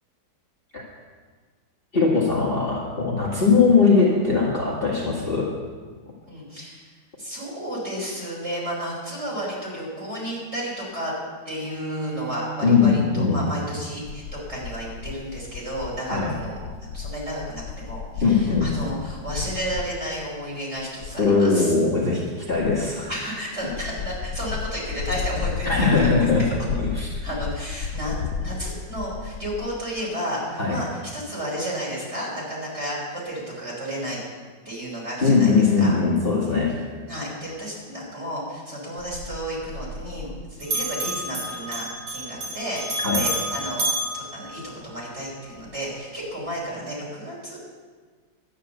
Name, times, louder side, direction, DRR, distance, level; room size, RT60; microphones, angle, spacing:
voice 1, 1.9-5.5 12.6-13.4 16.1-16.3 18.2-18.7 21.2-23.1 25.6-26.5 26.8-27.3 30.6-30.8 35.2-36.8 43.0-43.3, left 4 dB, 30° left, -6 dB, 2.1 m, -20 dB
voice 2, 6.3-6.9 7.2-11.1 11.4-16.6 16.9-21.7 23.1-26.3 27.2-34.2 34.6-36.0 36.4-36.6 37.1-42.8 43.2-43.9 44.1-47.7, equal, 30° right, -6 dB, 5.1 m, -32 dB
Bowed string instrument, 11.6-14.6, right 6 dB, 60° right, 4.8 m, -38 dB
sound 1, 14.0-20.0 20.2-20.5 20.8-21.3 22.5-23.3 23.6-29.8, left 6 dB, 65° left, 1.1 m, -33 dB
Bell, 39.0-40.4 40.6-45.1, right 1 dB, 85° right, 3.8 m, -30 dB
12.0 x 10.0 x 6.9 m, 1.5 s
omnidirectional pair, 2.2 m